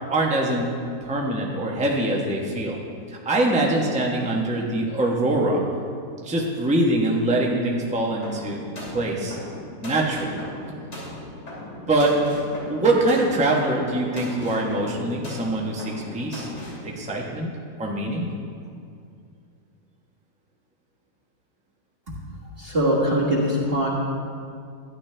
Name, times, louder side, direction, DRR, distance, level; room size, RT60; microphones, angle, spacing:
voice 1, 0.1-0.7 1.0-2.8 3.2-5.6 6.2-8.7 8.9-9.4 9.8-10.4 11.9-12.2 12.7-16.5 16.8-17.5 17.8-18.3, right 1 dB, 5° right, -2 dB, 0.8 m, -23 dB
sound 1, 8.2-16.9, left 1 dB, 80° left, 3.7 m, -38 dB
voice 2, 22.6-23.9, equal, 35° right, -6 dB, 1.7 m, -22 dB
12.5 x 10.5 x 3.3 m, 2.3 s
omnidirectional pair, 1.8 m